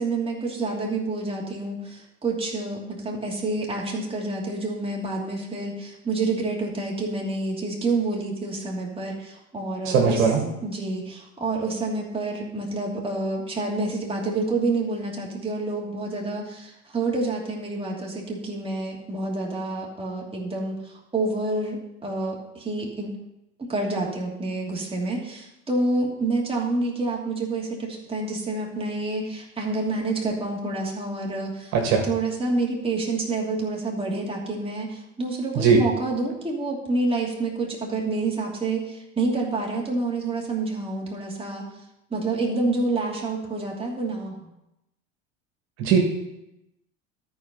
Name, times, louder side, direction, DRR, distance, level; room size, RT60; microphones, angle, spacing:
voice 1, 0.0-10.3 10.6-23.1 23.6-31.7 32.0-41.6 42.1-44.5, right 2 dB, 15° right, -2 dB, 2.9 m, -28 dB
voice 2, 9.8-10.4 31.7-32.1 35.6-35.8 45.8-46.0, right 6 dB, 60° right, 1 dB, 1.9 m, -19 dB
13.0 x 4.8 x 5.5 m, 0.88 s
hypercardioid pair, 80°, 38 cm